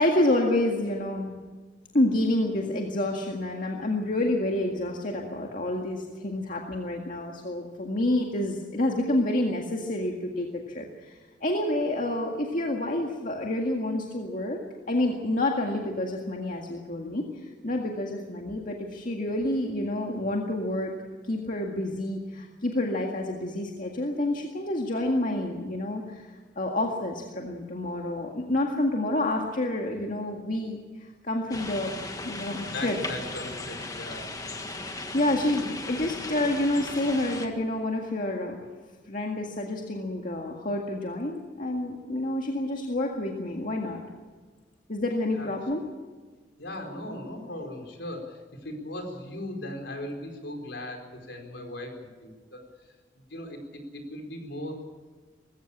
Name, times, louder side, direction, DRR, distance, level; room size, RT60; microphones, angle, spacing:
voice 1, 0.0-1.4 1.9-20.9 21.2-31.9 32.2-33.0 35.1-38.6 39.1-44.0 44.9-45.8, left 1 dB, 45° left, 1 dB, 1.9 m, -28 dB
sound 1, 31.5-37.5, left 2 dB, 20° left, 1.7 m, -37 dB
voice 2, 32.6-34.3 45.3-45.5 46.6-52.6 53.3-54.8, left 1 dB, 70° left, 3 dB, 4.5 m, -38 dB
20.5 x 16.0 x 8.7 m, 1.4 s
head